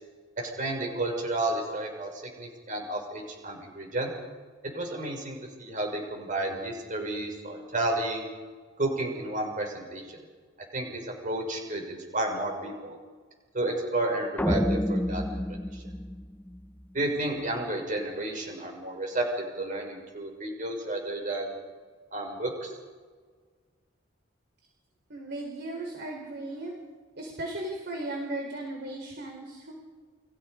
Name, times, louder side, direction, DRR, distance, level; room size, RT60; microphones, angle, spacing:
voice 1, 0.4-2.1 2.4-4.1 4.7-8.3 8.8-10.0 10.7-13.0 13.5-15.4 15.7-15.8 16.9-19.3 19.6-21.5 22.1-22.7, right 2 dB, 40° right, 2 dB, 6.2 m, -31 dB
sound 1, 14.4-16.8, left 1 dB, 10° left, 0.9 m, -29 dB
voice 2, 25.1-26.7 27.2-29.7, right 1 dB, 60° right, 1 dB, 4.1 m, -36 dB
30.0 x 23.0 x 5.2 m, 1.5 s
head